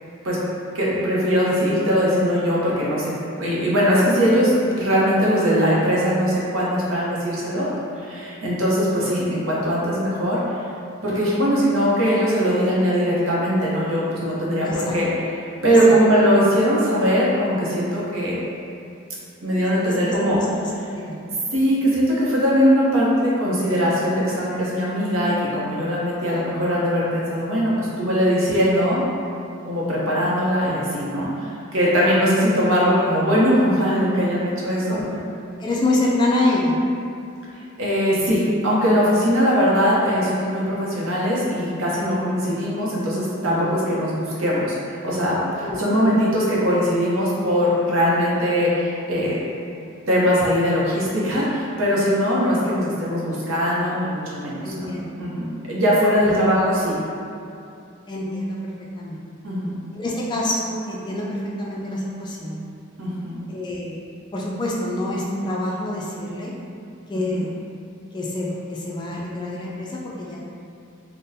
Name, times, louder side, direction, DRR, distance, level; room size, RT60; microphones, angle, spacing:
voice 1, 0.7-3.1 3.4-7.7 8.0-10.4 11.0-15.1 15.6-18.3 19.4-20.4 21.5-29.1 29.6-35.0 37.5-49.4 50.1-54.9 55.2-57.0 59.4-59.7 63.0-63.4 67.3-67.4, equal, 70° right, -6 dB, 0.7 m, -20 dB
voice 2, 14.7-15.0 15.9-16.0 19.7-21.2 26.2-26.4 29.7-30.2 34.9-35.2 35.6-36.8 45.6-45.8 54.6-55.1 56.2-56.4 58.1-59.2 59.9-62.6 63.5-63.9 64.3-66.5 67.1-67.5 68.1-70.4, left 1 dB, 20° left, -4 dB, 0.3 m, -26 dB
3.9 x 2.1 x 2.6 m, 2.6 s
head